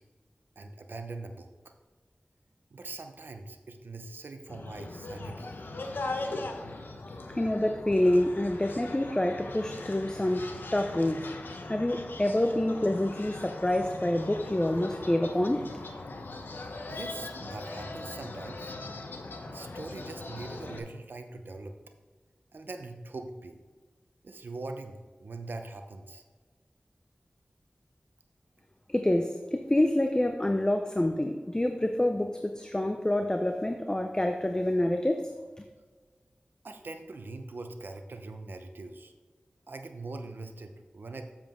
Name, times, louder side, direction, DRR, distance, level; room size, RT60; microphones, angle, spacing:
voice 1, 0.6-1.7 2.7-5.6 16.9-18.7 19.5-21.7 22.5-23.6 24.2-26.2 36.6-39.1 39.7-41.3, right 3 dB, 80° right, 6 dB, 0.8 m, -42 dB
sound 1, 4.5-20.8, left 2 dB, 90° left, 0.8 m, -40 dB
voice 2, 7.3-11.2 11.7-15.8 28.9-35.2 35.6-35.7, left 1 dB, 20° left, 5 dB, 0.6 m, -27 dB
7.4 x 7.3 x 3.7 m, 1.4 s
cardioid pair, 40°, 3 cm